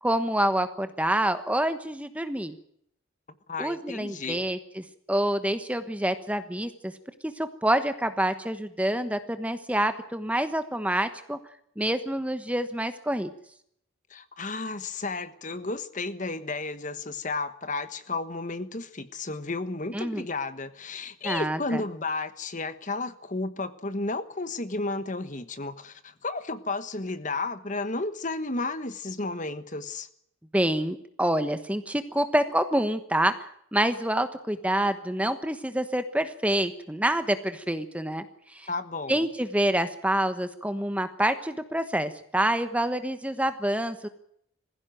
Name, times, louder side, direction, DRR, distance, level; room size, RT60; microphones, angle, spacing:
voice 1, 0.0-2.6 3.6-6.9 7.2-11.4 11.8-13.3 19.9-20.3 21.2-21.8 30.5-33.3 33.7-38.7 39.1-44.1, right 1 dB, 5° right, 10 dB, 1.1 m, -27 dB
voice 2, 3.5-4.4 14.1-30.1 38.7-39.2, left 3 dB, 40° left, 12 dB, 1.3 m, -33 dB
20.5 x 16.0 x 9.2 m, 0.70 s
head